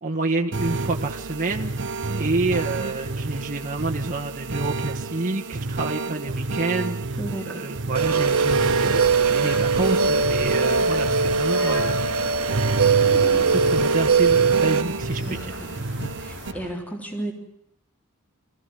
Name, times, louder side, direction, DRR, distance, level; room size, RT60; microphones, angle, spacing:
voice 1, 0.0-1.7 2.2-12.2 13.5-15.6, right 3 dB, 40° right, 0 dB, 1.4 m, -28 dB
sound 1, 0.5-16.5, right 3 dB, 60° right, 1.0 m, -30 dB
voice 2, 7.2-7.6 15.2-15.7 16.2-17.3, right 1 dB, 5° left, 2 dB, 3.5 m, -33 dB
sound 2, 7.9-16.7, left 1 dB, 60° left, 5.3 m, -37 dB
sound 3, 7.9-14.8, right 5 dB, 75° right, 1.5 m, -21 dB
26.0 x 15.5 x 9.5 m, 0.77 s
head